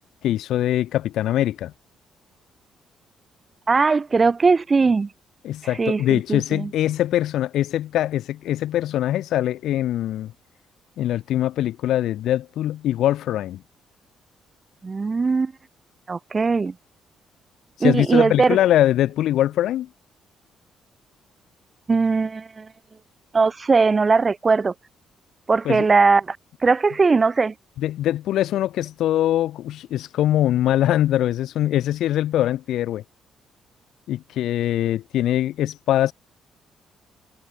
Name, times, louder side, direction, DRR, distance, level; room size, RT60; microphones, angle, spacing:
voice 1, 0.2-1.7 5.4-10.3 11.0-13.6 17.8-19.9 25.6-25.9 27.8-33.0 34.1-36.1, left 13 dB, 80° left, 1.6 m, -22 dB
voice 2, 3.7-5.1 5.8-6.7 14.8-15.5 16.1-16.7 17.8-18.6 21.9-22.7 23.3-24.7 25.5-26.4 26.6-27.5, right 4 dB, 30° right, 0.4 m, -19 dB
cardioid pair, 90°, 0 cm